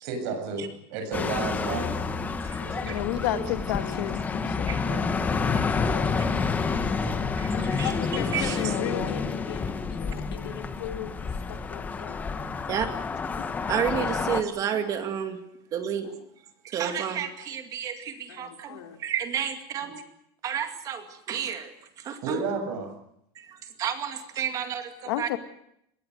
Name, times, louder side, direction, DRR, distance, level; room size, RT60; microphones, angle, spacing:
voice 1, 0.0-1.9 2.6-3.4 4.8-7.2 22.2-22.9, right 4 dB, 50° right, 6 dB, 7.5 m, -34 dB
sound 1, 1.1-14.4, left 4 dB, 10° left, 1.2 m, -29 dB
voice 2, 1.6-2.1 3.7-4.2 7.5-12.2 13.4-13.5 16.0-16.1 18.3-19.0, left 9 dB, 85° left, 4 dB, 3.9 m, -39 dB
voice 3, 2.9-4.8 8.6-9.2 25.0-25.4, left 14 dB, 65° left, 9 dB, 1.9 m, -31 dB
voice 4, 7.4-7.9 8.3-8.6 12.7-12.9 13.7-15.4 15.7-16.1 16.6-20.0 20.4-21.7 22.0-22.4 23.4-25.3, right 8 dB, 25° right, 7 dB, 2.2 m, -31 dB
26.0 x 21.0 x 6.4 m, 0.76 s
supercardioid pair, 175°, 13 cm